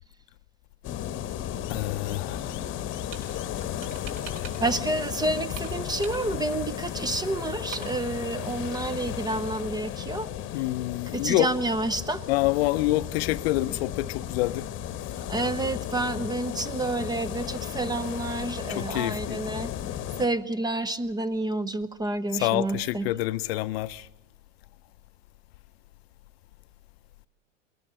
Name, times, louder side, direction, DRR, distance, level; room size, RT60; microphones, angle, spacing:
sound 1, 0.8-20.3, left 11 dB, 30° left, 1.1 m, -34 dB
voice 1, 1.7-2.8 10.5-11.5 12.3-14.7 18.7-19.4 22.3-24.1, left 17 dB, 50° left, 0.7 m, -27 dB
sound 2, 2.8-3.3 3.6-4.8 5.0-6.6 6.9-7.0 7.2-7.3 7.5-8.0, right 6 dB, 30° right, 6.8 m, -43 dB
voice 2, 4.6-10.3 11.1-12.2 15.3-19.7 20.2-23.1, right 2 dB, 10° right, 0.6 m, -29 dB
20.0 x 20.0 x 6.8 m
hypercardioid pair, 100°, 38 cm